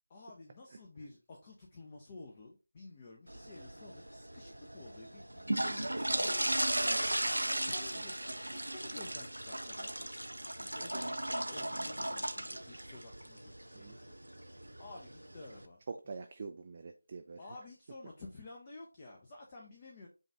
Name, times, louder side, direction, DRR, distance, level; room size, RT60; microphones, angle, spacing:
voice 1, 0.1-6.8 7.4-10.2 10.5-14.1 14.4-16.2 17.4-20.1, left 2 dB, 20° left, -1 dB, 0.6 m, -52 dB
sound 1, 3.3-15.6, right 1 dB, 70° right, 0.6 m, -37 dB
voice 2, 15.9-17.4, right 4 dB, 30° right, 5 dB, 0.3 m, -45 dB
5.3 x 2.4 x 3.3 m, 0.31 s
figure-of-eight pair, 165°, 0 cm